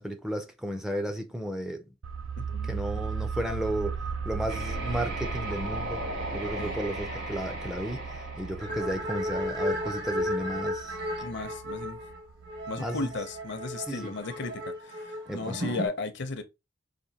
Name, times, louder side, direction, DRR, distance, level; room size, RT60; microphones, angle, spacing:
voice 1, 0.0-1.9 2.6-4.0 4.2-6.1 6.3-11.0 12.8-13.0 13.9-14.1 15.3-15.6, right 1 dB, ahead, 0.4 m, -33 dB
sound 1, 2.0-13.4 13.7-13.8, right 5 dB, 90° right, 0.5 m, -37 dB
voice 2, 2.4-2.8 6.6-6.8 8.7-8.9 11.2-12.0 12.7-16.4, left 3 dB, 60° left, 0.7 m, -35 dB
sound 2, 4.4-9.4, right 1 dB, 70° right, 2.7 m, -37 dB
sound 3, 8.6-15.9, equal, 55° right, 1.2 m, -34 dB
5.0 x 2.5 x 2.8 m
head